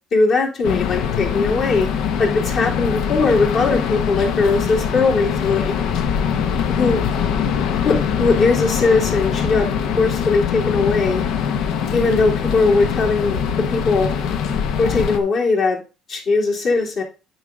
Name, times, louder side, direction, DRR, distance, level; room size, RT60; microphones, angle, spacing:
voice 1, 0.1-5.7 6.7-7.1 7.8-9.7 10.0-11.2 11.9-14.1 14.8-15.8 16.1-17.0, left 3 dB, 55° left, -3 dB, 3.3 m, -19 dB
sound 1, 0.6-15.2, left 7 dB, 75° left, 1.0 m, -22 dB
9.3 x 4.1 x 5.0 m, 0.31 s
cardioid pair, 115°, 0 cm